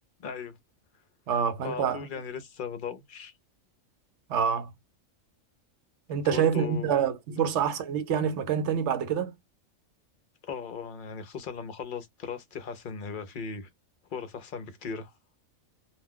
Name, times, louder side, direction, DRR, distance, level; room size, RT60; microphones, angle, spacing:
voice 1, 0.2-0.6 1.6-3.3 6.1-7.0 7.3-7.5 10.4-13.7 14.1-15.1, left 6 dB, 50° left, 0.7 m, -38 dB
voice 2, 1.3-2.1 4.3-4.7 6.1-9.3, right 8 dB, 70° right, 0.9 m, -26 dB
2.4 x 2.2 x 3.5 m
omnidirectional pair, 1.3 m